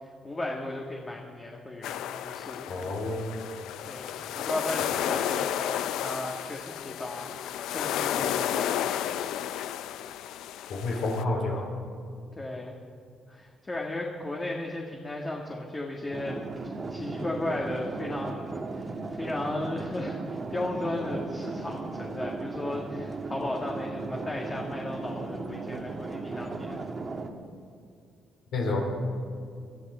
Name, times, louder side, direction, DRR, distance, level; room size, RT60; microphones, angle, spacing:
voice 1, 0.2-2.9 3.9-9.0 9.5-9.6 12.4-12.8 13.3-16.4 16.9-18.9 19.2-26.8, left 2 dB, 25° left, -1 dB, 1.8 m, -35 dB
sound 1, 1.8-11.2, left 11 dB, 85° left, 0.4 m, -32 dB
voice 2, 2.7-3.3 10.7-11.7 28.5-28.8, left 2 dB, 70° left, 0 dB, 4.1 m, -29 dB
sound 2, 16.1-27.3, right 3 dB, 35° right, 1.4 m, -36 dB
20.0 x 13.0 x 4.4 m, 2.3 s
cardioid pair, 90°, 0 cm